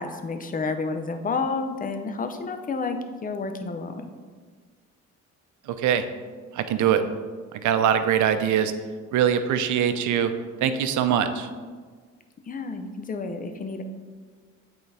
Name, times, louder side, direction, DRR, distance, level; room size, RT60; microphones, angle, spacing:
voice 1, 0.0-4.1 12.5-13.8, left 4 dB, 30° left, 7 dB, 0.6 m, -30 dB
voice 2, 5.7-6.0 6.5-7.0 7.6-8.7 9.1-10.3 10.6-11.5, right 9 dB, 75° right, 9 dB, 0.6 m, -22 dB
8.4 x 3.9 x 3.3 m, 1.5 s
cardioid pair, 90°, 30 cm